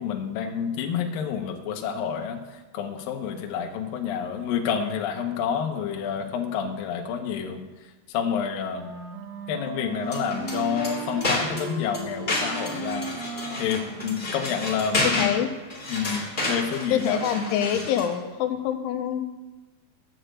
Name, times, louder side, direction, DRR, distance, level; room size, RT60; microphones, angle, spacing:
voice 1, 0.0-7.7 8.1-8.9 9.5-13.2 13.6-15.3 15.9-17.2 17.7-17.9, left 7 dB, 65° left, 3 dB, 2.5 m, -29 dB
Wind instrument woodwind instrument, 8.7-14.9, right 3 dB, 65° right, 4.3 m, -37 dB
sound 1, 10.0-18.2, left 2 dB, 15° left, 2.0 m, -31 dB
voice 2, 15.2-15.5 16.9-19.4, left 9 dB, 90° left, 7 dB, 3.4 m, -25 dB
11.0 x 9.1 x 8.2 m, 1.2 s
omnidirectional pair, 5.3 m